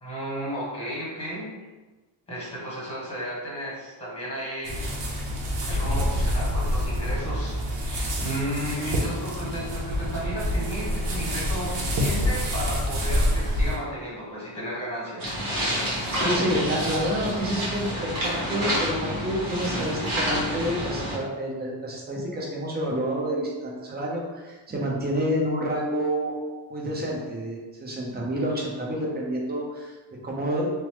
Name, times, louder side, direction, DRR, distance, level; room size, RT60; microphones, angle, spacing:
voice 1, 0.0-1.6 2.3-4.8 5.4-15.2, equal, 10° left, -6 dB, 1.2 m, -33 dB
sound 1, 4.6-13.8, equal, 60° right, 0.7 m, -27 dB
sound 2, 15.2-21.1, equal, 45° right, 1.4 m, -28 dB
voice 2, 16.1-26.4 26.7-29.9 30.2-30.7, equal, 20° right, -3 dB, 0.7 m, -28 dB
3.0 x 2.1 x 2.9 m, 1.2 s
cardioid pair, 85°, 48 cm